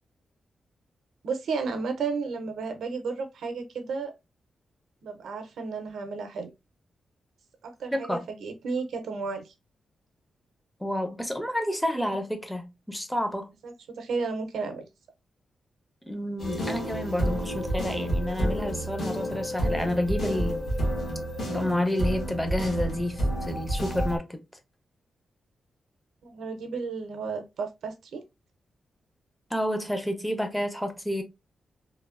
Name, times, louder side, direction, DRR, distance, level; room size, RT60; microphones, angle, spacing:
voice 1, 1.2-4.1 5.0-6.5 7.6-9.5 13.6-14.9 26.2-28.2, right 4 dB, 90° right, 0.5 m, -33 dB
voice 2, 7.9-8.2 10.8-13.5 16.1-20.6 21.5-24.4 29.5-31.2, left 1 dB, 5° left, 0.5 m, -29 dB
sound 1, 16.4-24.2, right 1 dB, 65° left, 1.1 m, -29 dB
3.0 x 2.1 x 2.3 m
wide cardioid pair, 135°, 0 cm